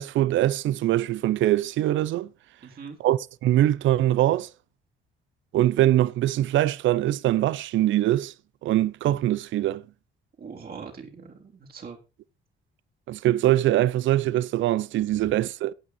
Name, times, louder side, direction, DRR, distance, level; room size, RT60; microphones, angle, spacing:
voice 1, 0.0-2.3 3.0-4.5 5.5-8.3 8.6-9.8 13.1-15.7, right 14 dB, 75° right, 0.6 m, -23 dB
voice 2, 2.6-3.0 10.4-12.0 15.1-15.3, right 5 dB, 50° right, 3.9 m, -41 dB
17.5 x 6.2 x 4.3 m
cardioid pair, 90°, 20 cm